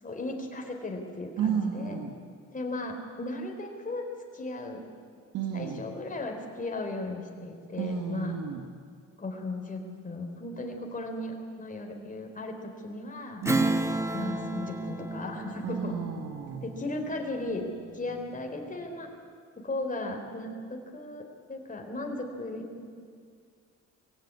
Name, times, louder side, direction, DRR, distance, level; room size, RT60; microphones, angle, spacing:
voice 1, 0.0-2.0 2.5-4.1 4.3-4.9 5.5-8.4 9.2-13.4 14.1-16.0 16.6-17.6 17.9-19.1 19.6-22.9, left 2 dB, 25° left, 2 dB, 4.1 m, -36 dB
voice 2, 1.4-2.1 5.3-5.8 7.8-8.6 13.4-13.8 15.6-16.6, right 7 dB, 80° right, 3 dB, 1.8 m, -32 dB
Strum, 13.4-18.3, right 2 dB, 10° right, 1.3 m, -32 dB
22.5 x 16.0 x 9.8 m, 2.1 s
cardioid pair, 90°, 30 cm